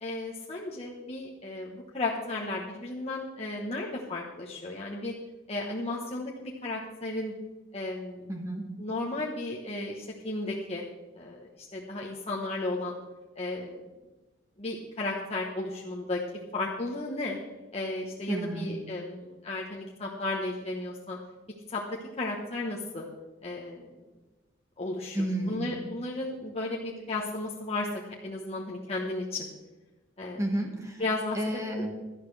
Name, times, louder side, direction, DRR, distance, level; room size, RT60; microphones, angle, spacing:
voice 1, 0.0-5.1 5.5-7.3 7.7-8.3 8.8-10.8 11.2-13.0 13.4-13.8 14.6-16.2 16.5-17.4 17.7-21.2 21.7-21.8 22.2-23.0 23.4-23.8 24.8-25.2 25.5-27.9 28.2-29.5 30.2-30.4 31.0-31.8, left 2 dB, 30° left, -3 dB, 1.1 m, -34 dB
voice 2, 8.3-8.7 18.3-18.7 25.1-25.7 30.4-31.0 31.3-31.9, right 1 dB, 15° right, 2 dB, 1.6 m, -31 dB
17.0 x 12.0 x 3.3 m, 1.2 s
head